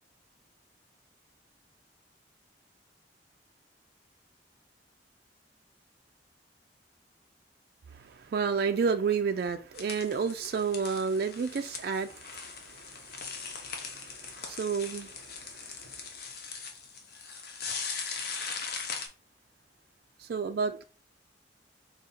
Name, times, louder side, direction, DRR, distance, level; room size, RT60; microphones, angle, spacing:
voice 1, 8.0-15.9 20.2-20.8, right 5 dB, 60° right, 0.3 m, -31 dB
sound 1, 9.7-19.1, left 5 dB, 60° left, 0.8 m, -40 dB
3.8 x 2.8 x 4.2 m
head